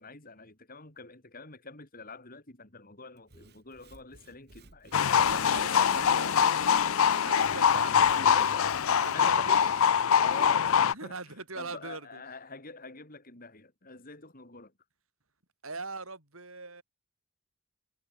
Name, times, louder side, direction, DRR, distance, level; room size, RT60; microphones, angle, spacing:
voice 1, 0.0-4.9 5.7-6.0 8.2-8.7 9.1-9.8 10.2-14.7, left 3 dB, 40° left, 4.3 m, -46 dB
Sawing / Wood, 3.2-9.4, right 3 dB, 45° right, 2.4 m, -55 dB
sound 1, 4.9-10.9, left 7 dB, 65° left, 0.5 m, -24 dB
voice 2, 5.1-6.9 7.2-8.3 9.0-9.7 10.7-12.2 15.6-16.8, right 3 dB, 65° right, 7.0 m, -41 dB
head